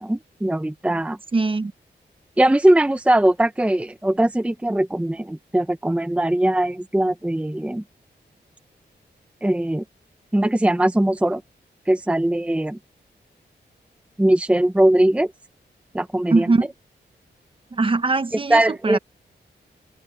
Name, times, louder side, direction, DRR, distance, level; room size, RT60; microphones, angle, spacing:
voice 1, 0.0-1.2 2.4-7.8 9.4-9.8 10.3-11.4 11.9-12.8 14.2-15.3 15.9-16.5 18.5-19.0, right 1 dB, 5° right, 0.7 m, -20 dB
voice 2, 1.3-1.7 16.3-16.7 17.7-19.0, right 3 dB, 30° right, 0.9 m, -21 dB
open air
wide cardioid pair, 160°, 18 cm